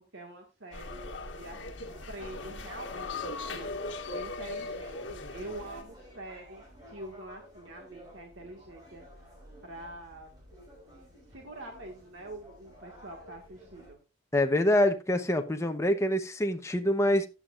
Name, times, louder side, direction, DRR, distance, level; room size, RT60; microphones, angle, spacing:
voice 1, 0.1-3.7 4.1-9.0 9.6-10.3 11.3-14.0, right 1 dB, 80° right, 1.8 m, -45 dB
sound 1, 0.7-5.8, left 3 dB, 70° left, 1.5 m, -39 dB
sound 2, 0.8-13.9, equal, 20° right, 6.3 m, -53 dB
voice 2, 14.3-17.3, left 1 dB, 15° left, 0.9 m, -25 dB
14.0 x 8.9 x 2.5 m
head